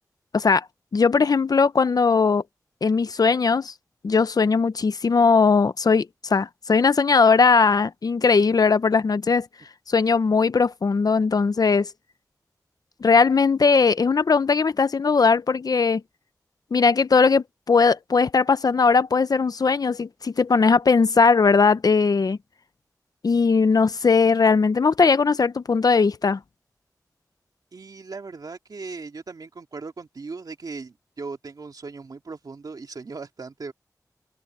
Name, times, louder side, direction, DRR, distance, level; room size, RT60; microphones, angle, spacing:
voice 1, 0.3-0.7 0.9-2.4 2.8-3.7 4.0-9.5 9.9-11.9 13.0-16.0 16.7-22.4 23.2-26.4, left 4 dB, 75° left, 0.8 m, -19 dB
voice 2, 27.7-33.7, right 4 dB, 75° right, 2.8 m, -38 dB
open air
cardioid pair, 50°, 7 cm